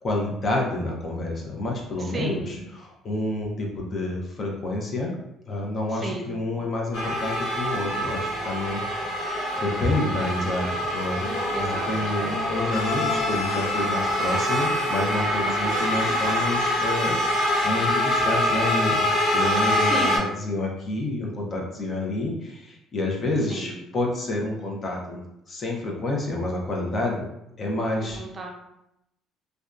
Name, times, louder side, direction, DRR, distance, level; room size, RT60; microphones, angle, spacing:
voice 1, 0.0-5.1 5.5-8.8 9.6-11.2 11.6-17.2 17.6-19.0 19.3-25.2 25.5-27.3 27.6-28.2, left 2 dB, 40° left, -1 dB, 0.6 m, -28 dB
voice 2, 2.0-2.6 5.9-6.4 11.5-12.2 15.4-16.1 19.8-20.3 23.5-23.8 28.2-28.5, right 2 dB, 30° right, 1 dB, 0.5 m, -34 dB
sound 1, 6.9-20.2, left 1 dB, 70° left, 0.8 m, -25 dB
2.6 x 2.2 x 2.4 m, 0.85 s
cardioid pair, 100°, 0 cm